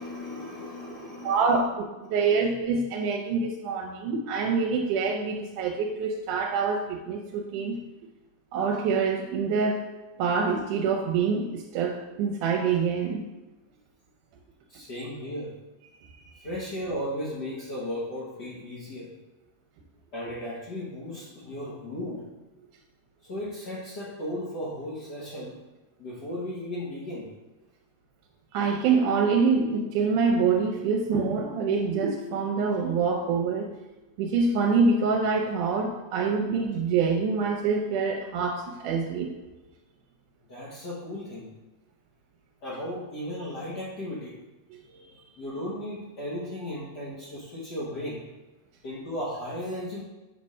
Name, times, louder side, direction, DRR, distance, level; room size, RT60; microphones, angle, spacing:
voice 1, 0.0-2.4 14.7-15.5 16.4-19.1 20.1-22.2 23.2-25.6 26.0-27.3 40.5-41.5 42.6-44.4 45.4-48.2 48.8-50.0, left 1 dB, 70° left, -8 dB, 0.9 m, -35 dB
voice 2, 1.2-1.7 2.1-7.8 8.5-9.8 10.2-13.2 16.3-16.5 28.5-33.7 34.2-39.3 44.9-45.1, right 5 dB, 80° right, 1 dB, 2.0 m, -25 dB
7.4 x 3.3 x 5.4 m, 1.1 s
omnidirectional pair, 3.8 m